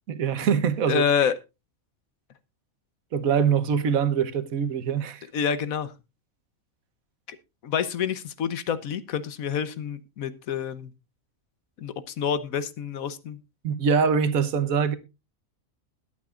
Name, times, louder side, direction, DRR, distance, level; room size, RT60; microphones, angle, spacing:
voice 1, 0.1-1.0 3.1-5.2 13.6-15.0, right 7 dB, 85° right, 1.5 m, -23 dB
voice 2, 0.9-1.4 5.3-5.9 7.3-7.4 7.6-10.9 11.8-13.4, left 7 dB, 85° left, 1.4 m, -27 dB
21.5 x 8.1 x 2.4 m
omnidirectional pair, 1.4 m